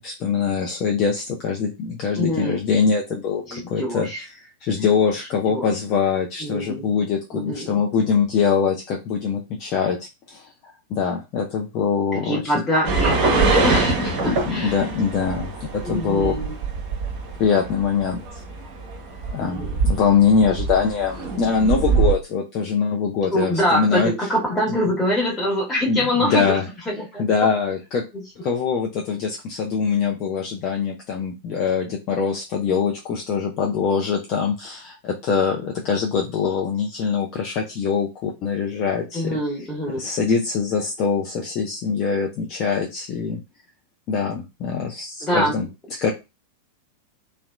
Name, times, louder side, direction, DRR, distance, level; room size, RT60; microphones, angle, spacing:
voice 1, 0.0-4.1 4.6-10.5 10.9-12.5 14.3-16.4 17.4-18.2 19.3-24.1 24.7-24.8 25.9-26.6 27.2-28.1 28.4-39.4 40.0-43.4 44.1-45.7 46.0-46.1, left 6 dB, 40° left, 0.5 m, -23 dB
voice 2, 2.1-2.6 3.5-4.2 5.5-5.7 6.4-6.9 7.3-7.7 12.1-14.8 15.8-16.6 19.4-19.9 23.3-26.6 26.8-27.3 28.1-28.2 39.1-40.1 45.2-45.6, equal, 15° left, 1.3 m, -24 dB
sound 1, 12.8-22.1, right 4 dB, 40° right, 0.8 m, -24 dB
2.8 x 2.1 x 2.4 m
figure-of-eight pair, 90°, 0 cm